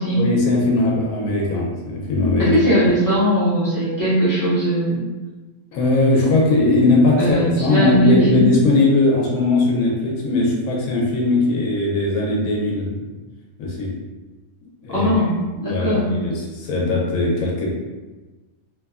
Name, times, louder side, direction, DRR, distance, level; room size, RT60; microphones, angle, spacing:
voice 1, 0.1-2.6 5.7-13.1 13.6-13.9 14.8-15.1 15.6-17.7, left 2 dB, 75° left, -2 dB, 1.1 m, -19 dB
voice 2, 2.4-5.0 7.2-8.5 14.9-16.1, equal, 20° left, -11 dB, 0.5 m, -19 dB
3.0 x 2.2 x 2.3 m, 1.2 s
omnidirectional pair, 1.5 m